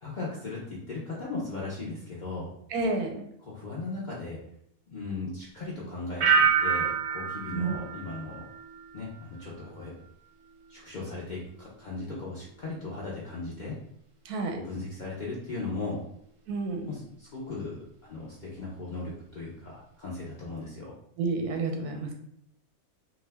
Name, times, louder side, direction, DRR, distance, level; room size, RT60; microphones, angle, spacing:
voice 1, 0.0-2.5 3.4-4.4 4.9-8.4 8.9-9.9 10.7-13.8 14.5-16.0 16.9-20.9, left 3 dB, 85° left, -6 dB, 0.4 m, -37 dB
voice 2, 2.7-3.3 7.5-7.8 14.2-14.6 16.5-17.0 21.2-22.1, right 3 dB, 90° right, 4 dB, 1.1 m, -30 dB
sound 1, 6.2-9.0 9.4-9.9, right 6 dB, 65° right, 0.7 m, -27 dB
2.5 x 2.3 x 3.3 m, 0.72 s
omnidirectional pair, 1.6 m